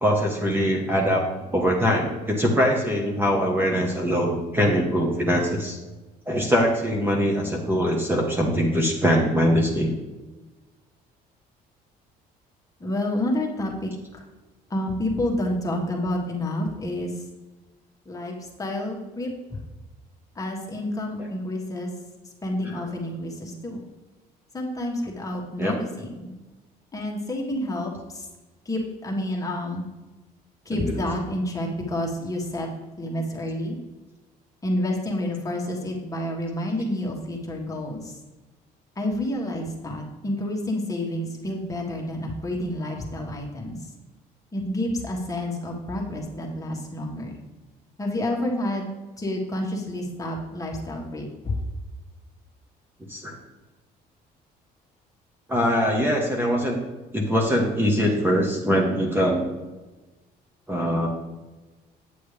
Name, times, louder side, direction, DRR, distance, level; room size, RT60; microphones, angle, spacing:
voice 1, 0.0-5.8 6.3-9.9 22.8-22.9 25.6-25.7 30.7-31.0 53.1-53.4 55.5-56.8 57.1-59.4 60.7-61.1, equal, 10° right, 0 dB, 1.3 m, -22 dB
voice 2, 12.8-14.2 14.7-17.2 18.0-19.6 20.3-21.9 22.4-23.8 24.5-26.3 26.9-28.3 28.6-29.8 30.6-32.7 33.0-33.8 34.6-38.1 38.9-43.9 44.5-47.4 48.0-48.9 49.2-51.6, left 1 dB, 20° left, -1 dB, 1.7 m, -29 dB
8.5 x 7.8 x 3.4 m, 1.2 s
cardioid pair, 110°, 17 cm